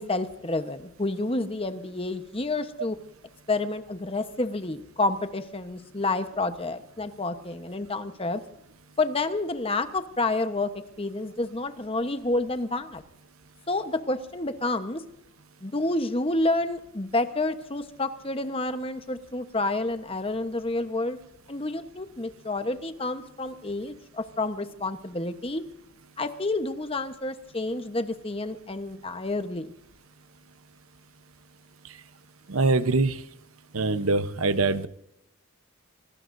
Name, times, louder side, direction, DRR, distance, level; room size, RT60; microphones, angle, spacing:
voice 1, 0.0-3.0 3.5-8.4 9.0-10.7 11.0-13.0 13.7-15.0 15.6-21.2 21.5-25.6 26.2-29.7, left 2 dB, 25° left, 9 dB, 1.1 m, -29 dB
voice 2, 32.5-33.2 33.7-34.9, right 3 dB, 85° right, 12 dB, 1.0 m, -23 dB
26.0 x 19.0 x 2.7 m, 0.79 s
head